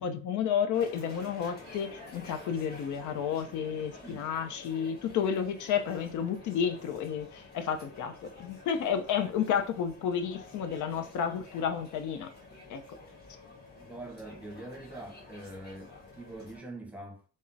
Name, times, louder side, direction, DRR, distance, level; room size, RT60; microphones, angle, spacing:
voice 1, 0.0-12.3 12.7-12.8, left 8 dB, 75° left, 0.6 m, -31 dB
sound 1, 0.7-16.6, left 3 dB, 35° left, 1.3 m, -50 dB
voice 2, 13.8-17.2, right 1 dB, 5° right, 0.8 m, -44 dB
3.6 x 2.1 x 2.6 m
cardioid pair, 90°, 30 cm